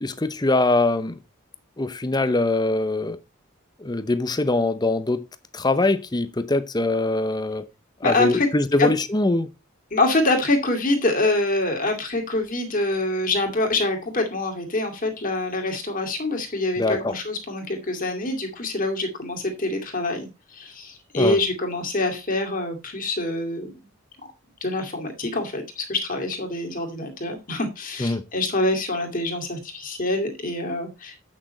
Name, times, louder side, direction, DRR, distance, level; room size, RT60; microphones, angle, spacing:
voice 1, 0.0-1.1 1.8-3.2 3.8-5.3 5.5-7.6 8.0-9.5 16.8-17.1 21.2-21.4 28.0-28.2, left 2 dB, 20° left, 0.7 m, -22 dB
voice 2, 8.0-8.5 8.8-8.9 9.9-23.9 24.2-24.3 24.6-31.2, left 2 dB, 40° left, 2.3 m, -25 dB
8.4 x 6.4 x 4.1 m
head